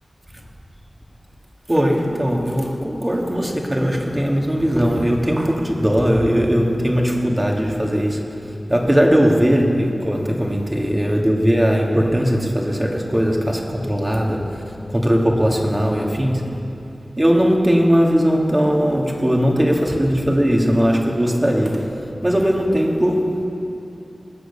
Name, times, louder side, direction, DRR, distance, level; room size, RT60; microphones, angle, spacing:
voice 1, 1.7-8.2 8.7-14.6 14.9-16.5 17.2-21.8 22.2-23.5, equal, 20° right, 0 dB, 2.2 m, -19 dB
20.5 x 8.0 x 6.9 m, 2.9 s
wide cardioid pair, 50°, 0 cm